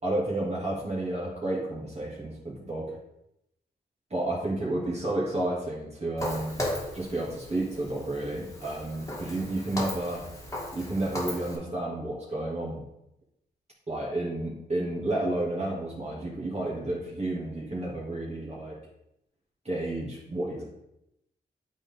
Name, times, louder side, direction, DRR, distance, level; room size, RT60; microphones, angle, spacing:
voice 1, 0.0-2.9 4.1-6.6 6.9-10.2 10.7-12.8 13.9-18.8 19.6-20.6, right 1 dB, 35° right, -5 dB, 2.4 m, -31 dB
Walk footsteps, 6.2-11.6, left 1 dB, 20° left, 1.8 m, -36 dB
8.1 x 4.1 x 3.6 m, 0.83 s
cardioid pair, 50°, 18 cm